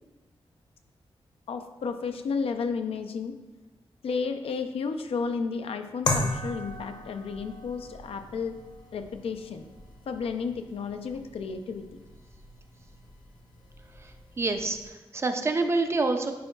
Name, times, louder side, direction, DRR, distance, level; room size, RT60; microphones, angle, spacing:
voice 1, 1.5-3.4 4.0-8.6 8.9-9.6 10.1-11.9, left 5 dB, 90° left, 7 dB, 0.4 m, -32 dB
sound 1, 6.0-14.9, left 2 dB, 45° left, 0.8 m, -37 dB
voice 2, 14.0-16.3, right 3 dB, 30° right, 6 dB, 0.4 m, -27 dB
9.2 x 4.5 x 2.3 m, 1.2 s
wide cardioid pair, 145°, 10 cm